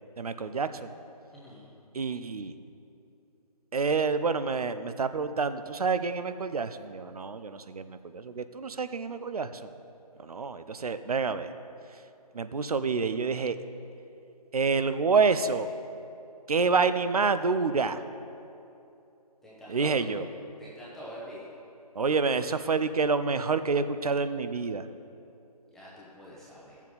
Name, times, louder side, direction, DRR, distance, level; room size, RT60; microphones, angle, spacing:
voice 1, 0.2-0.9 1.9-2.5 3.7-9.6 10.2-11.5 12.3-13.6 14.5-15.7 16.5-18.0 19.7-20.3 21.9-24.9, right 4 dB, 65° right, 11 dB, 0.6 m, -28 dB
voice 2, 1.3-1.7 19.4-20.0 20.6-21.4 25.7-26.8, equal, ahead, -8 dB, 0.8 m, -45 dB
14.0 x 7.2 x 4.0 m, 2.7 s
figure-of-eight pair, 155°, 20 cm